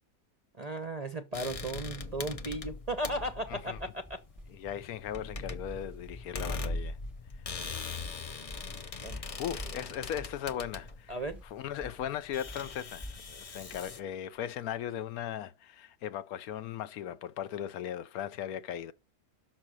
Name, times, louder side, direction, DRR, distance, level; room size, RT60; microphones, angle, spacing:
voice 1, 0.6-4.2 9.0-9.2 11.1-11.4, right 1 dB, 35° right, 0.7 m, -36 dB
sound 1, 1.3-14.0, left 3 dB, 55° left, 0.4 m, -41 dB
sound 2, 2.0-14.9, left 1 dB, ahead, 1.1 m, -49 dB
voice 2, 4.5-7.0 8.9-11.1 11.4-18.9, left 10 dB, 75° left, 1.1 m, -38 dB
6.2 x 6.1 x 6.1 m
omnidirectional pair, 1.6 m